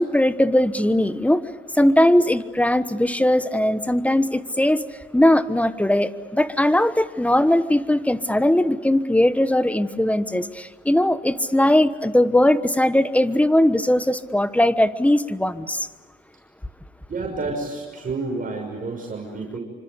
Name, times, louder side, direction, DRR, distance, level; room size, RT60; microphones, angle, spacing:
voice 1, 0.0-1.4 1.7-4.8 5.1-15.9, left 1 dB, 5° left, 13 dB, 1.2 m, -19 dB
voice 2, 17.1-19.6, right 3 dB, 45° right, 0 dB, 6.1 m, -29 dB
27.0 x 25.5 x 8.2 m, 1.4 s
cardioid pair, 90°, 20 cm